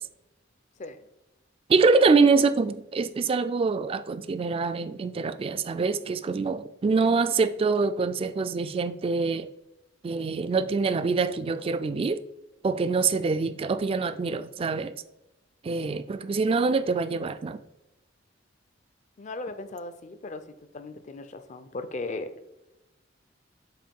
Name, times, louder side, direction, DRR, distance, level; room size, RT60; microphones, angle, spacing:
voice 1, 1.7-9.5 10.0-12.2 12.6-14.9 15.6-17.6, right 4 dB, 30° right, 0.3 m, -25 dB
voice 2, 19.2-22.3, left 2 dB, 40° left, 0.5 m, -37 dB
7.4 x 2.6 x 5.2 m
head